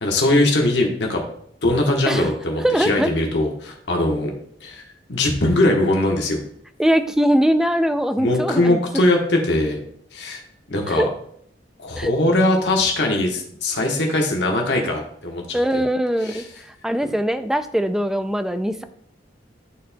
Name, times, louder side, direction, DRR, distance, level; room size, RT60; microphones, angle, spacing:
voice 1, 0.0-1.2 1.6-4.3 4.6-4.8 5.1-6.4 8.2-9.8 10.1-10.4 10.7-11.1 11.8-15.6 16.2-16.4, left 1 dB, 75° left, 1 dB, 1.2 m, -20 dB
voice 2, 2.6-3.1 6.8-8.8 10.9-11.1 12.0-12.1 15.5-16.4 16.8-18.8, equal, 5° right, 10 dB, 0.3 m, -21 dB
11.0 x 4.2 x 2.2 m, 0.66 s
head